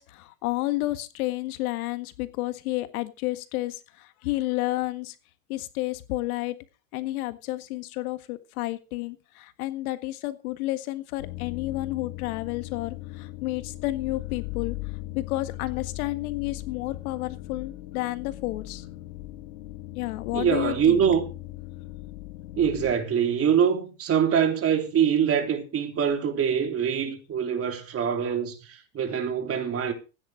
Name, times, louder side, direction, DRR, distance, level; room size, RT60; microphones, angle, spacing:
voice 1, 0.0-5.2 5.5-6.6 6.9-14.8 15.2-18.9 20.0-21.0, left 18 dB, 65° left, 1.7 m, -31 dB
sound 1, 11.2-22.9, left 17 dB, 80° left, 2.4 m, -38 dB
voice 2, 20.3-21.2 22.6-29.9, right 8 dB, 30° right, 3.6 m, -24 dB
15.5 x 9.9 x 5.0 m
hypercardioid pair, 120°, 47 cm